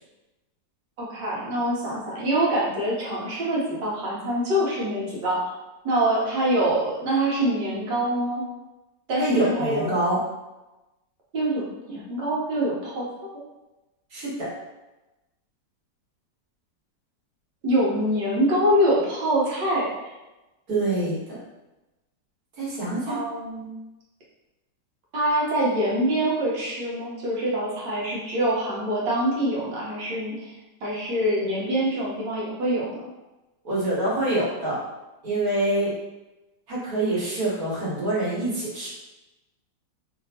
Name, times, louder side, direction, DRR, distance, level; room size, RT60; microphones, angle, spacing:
voice 1, 1.0-5.5 5.8-8.4 9.1-9.9 11.3-13.0 17.6-19.9 23.1-23.7 25.1-30.5 30.8-33.0, right 1 dB, 75° right, -5 dB, 1.6 m, -25 dB
voice 2, 9.2-10.2 14.1-14.5 20.7-21.2 22.6-23.2 33.6-34.8 35.2-35.9 36.7-38.9, right 1 dB, 55° right, -7 dB, 1.6 m, -25 dB
3.3 x 2.8 x 2.7 m, 1.0 s
omnidirectional pair, 2.0 m